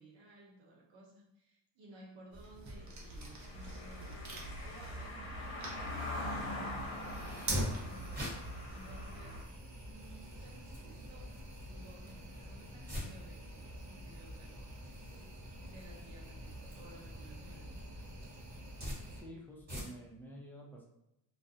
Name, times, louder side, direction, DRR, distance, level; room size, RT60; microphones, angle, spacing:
voice 1, 0.0-5.4 6.0-9.4 9.9-14.8 15.6-18.1, right 1 dB, 75° right, -2 dB, 0.9 m, -57 dB
sound 1, 2.3-19.2, right 1 dB, 40° right, 0.6 m, -45 dB
Car passing by / Engine, 2.7-9.4, left 1 dB, 75° left, 0.8 m, -43 dB
sound 2, 8.1-20.2, equal, 20° right, 1.3 m, -50 dB
voice 2, 19.1-20.9, equal, 5° left, -2 dB, 0.5 m, -50 dB
2.4 x 2.2 x 2.6 m, 0.84 s
cardioid pair, 95°, 46 cm